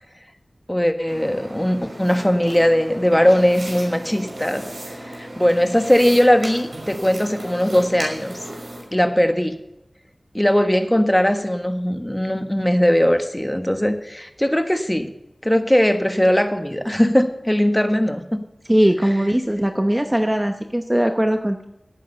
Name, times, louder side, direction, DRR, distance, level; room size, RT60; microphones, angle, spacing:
voice 1, 0.7-4.6 5.2-8.3 8.9-9.6 10.3-15.1 15.4-18.4, equal, 10° left, 7 dB, 1.4 m, -19 dB
sound 1, 1.1-8.8, right 1 dB, 65° right, 5.7 m, -36 dB
voice 2, 18.7-21.6, equal, 15° right, 6 dB, 0.9 m, -20 dB
18.0 x 9.1 x 5.6 m, 0.84 s
wide cardioid pair, 50°, 0 cm